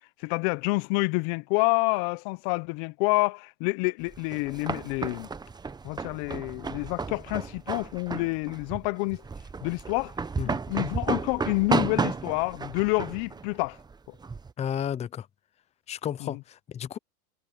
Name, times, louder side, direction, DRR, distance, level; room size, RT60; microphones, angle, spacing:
voice 1, 0.2-5.3 5.8-9.2 9.6-10.1 10.4-13.8 16.2-16.4, left 27 dB, 45° left, 1.0 m, -28 dB
sound 1, 4.1-14.5, right 4 dB, 10° right, 1.0 m, -33 dB
voice 2, 14.6-15.3 15.9-17.0, left 9 dB, 15° left, 0.6 m, -32 dB
hypercardioid pair, 125°, 45 cm